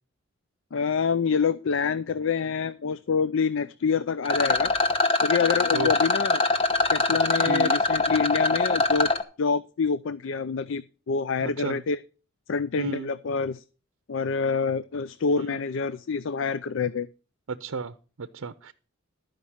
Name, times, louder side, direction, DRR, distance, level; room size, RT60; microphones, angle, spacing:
voice 1, 0.7-4.7 5.2-6.4 6.9-9.1 9.4-12.0 12.5-13.6 14.1-17.1, left 5 dB, 65° left, 15 dB, 0.4 m, -26 dB
Rattle, 4.2-9.2, left 3 dB, 25° left, 1.1 m, -23 dB
voice 2, 7.5-7.8 11.4-11.8 12.8-13.1 15.4-15.6 17.5-18.7, right 4 dB, 90° right, 10 dB, 0.6 m, -33 dB
12.5 x 5.2 x 7.1 m, 0.36 s
head